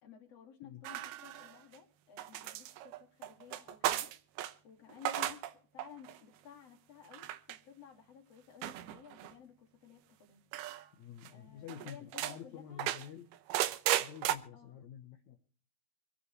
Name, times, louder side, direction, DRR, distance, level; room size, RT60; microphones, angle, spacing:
voice 1, 0.0-4.1 4.6-5.4 5.7-10.4 11.3-13.0 14.5-14.8, left 8 dB, 45° left, 2 dB, 3.4 m, -55 dB
sound 1, 0.8-1.8 2.2-4.5 4.9-5.5 5.8-6.2 7.1-7.6 8.6-9.3 10.5-10.8 11.2-11.3 11.7-12.4 12.8-14.4, right 13 dB, 80° right, 2.7 m, -35 dB
voice 2, 11.0-13.3 14.0-15.4, left 9 dB, 60° left, 2 dB, 2.1 m, -49 dB
25.0 x 10.0 x 3.3 m, 0.43 s
omnidirectional pair, 4.5 m